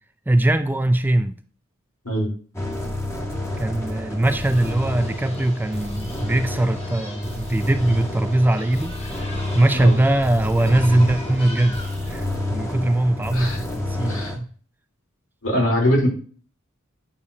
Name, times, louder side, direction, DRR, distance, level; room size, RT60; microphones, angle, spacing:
voice 1, 0.3-1.4 3.6-11.8 12.1-14.5, right 1 dB, 10° right, 0.3 m, -21 dB
sound 1, 2.5-14.4, left 1 dB, 15° left, 1.8 m, -30 dB
sound 2, 4.3-12.1, left 1 dB, 30° left, 2.4 m, -38 dB
voice 2, 13.3-13.6 14.0-14.3 15.4-16.1, equal, 70° left, 3.4 m, -22 dB
8.7 x 6.7 x 2.7 m
head